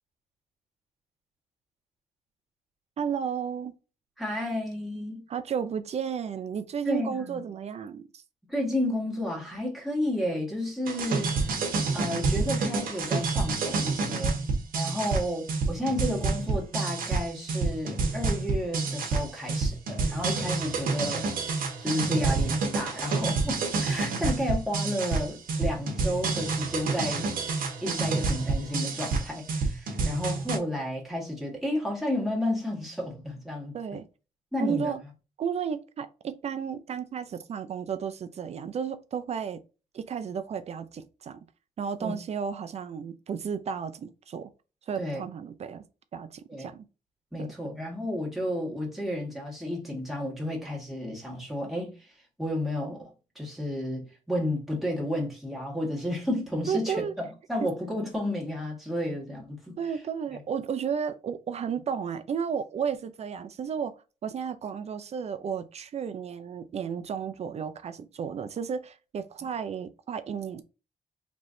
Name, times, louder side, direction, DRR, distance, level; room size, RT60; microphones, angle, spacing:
voice 1, 3.0-3.7 5.3-8.2 33.7-34.0 34.6-35.0 35.4-39.6 39.9-41.4 41.8-44.5 44.9-45.8 46.1-46.8 47.4-47.5 56.7-57.1 57.6-57.7 59.8-63.9 64.2-70.6, right 7 dB, 45° right, 0.4 m, -33 dB
voice 2, 4.2-5.3 6.9-7.4 8.5-11.7 11.9-14.4 14.7-21.4 21.8-27.3 27.8-33.8 34.5-34.9 42.0-42.1 45.0-45.2 46.5-46.7 47.3-52.1 52.4-53.1 53.4-59.8, left 1 dB, ahead, 1.8 m, -32 dB
sound 1, 10.9-30.6, right 4 dB, 75° right, 1.2 m, -28 dB
4.4 x 3.1 x 2.6 m
wide cardioid pair, 145°, 15 cm